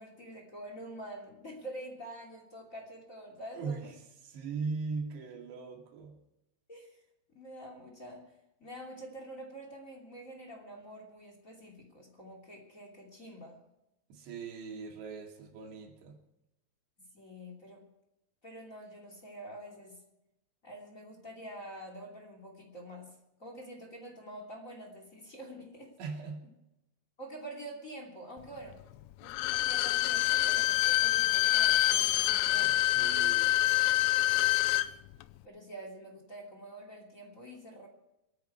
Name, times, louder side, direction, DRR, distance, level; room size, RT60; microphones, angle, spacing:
voice 1, 0.0-3.9 6.7-7.0 7.3-8.2 8.6-13.6 17.0-17.8 18.4-20.0 20.6-25.9 27.2-28.8 29.2-32.8 35.4-37.9, right 1 dB, 25° left, 2 dB, 2.3 m, -47 dB
voice 2, 3.5-3.9 4.2-6.2 14.1-16.2 26.0-26.5 32.6-33.6, right 4 dB, 65° right, 2 dB, 4.5 m, -39 dB
Bowed string instrument, 29.2-34.9 35.2-35.3, left 15 dB, 80° left, 2.5 m, -26 dB
27.5 x 9.5 x 4.6 m, 0.88 s
omnidirectional pair, 5.3 m